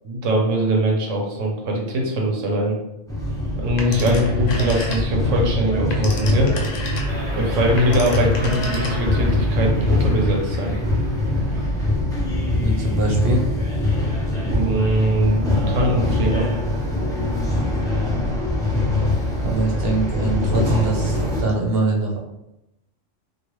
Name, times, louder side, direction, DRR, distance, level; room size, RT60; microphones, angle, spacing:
voice 1, 0.0-2.8 3.6-6.6 7.3-10.7 14.3-16.5, right 1 dB, 85° right, 0 dB, 1.1 m, -22 dB
sound 1, 3.1-21.4, left 1 dB, 5° left, 0.4 m, -23 dB
Telephone, 3.8-5.3 5.7-9.3, left 2 dB, 80° left, 0.3 m, -33 dB
sound 2, 7.1-12.2, equal, 25° right, 0.8 m, -36 dB
voice 2, 12.6-13.5 19.4-22.2, right 3 dB, 55° right, -1 dB, 0.9 m, -23 dB
3.0 x 2.4 x 3.0 m, 0.87 s
omnidirectional pair, 1.3 m